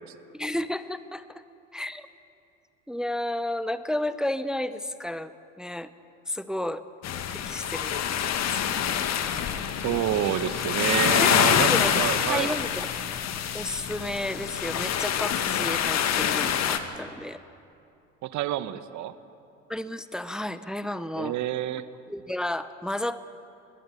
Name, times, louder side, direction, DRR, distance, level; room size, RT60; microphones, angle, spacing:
voice 1, 0.3-1.4 1.7-2.1 2.9-5.9 6.3-6.8 7.4-8.0 8.5-8.8 11.2-11.9 12.3-12.9 13.5-17.4 19.7-21.3 22.1-23.3, left 1 dB, ahead, 13 dB, 0.7 m, -32 dB
sound 1, 7.0-16.8, left 9 dB, 45° left, 1.7 m, -26 dB
voice 2, 9.8-11.7 11.9-12.5 18.2-19.1 21.2-21.8, right 13 dB, 50° right, 14 dB, 1.2 m, -28 dB
20.0 x 18.5 x 8.6 m, 2.6 s
hypercardioid pair, 65°, 38 cm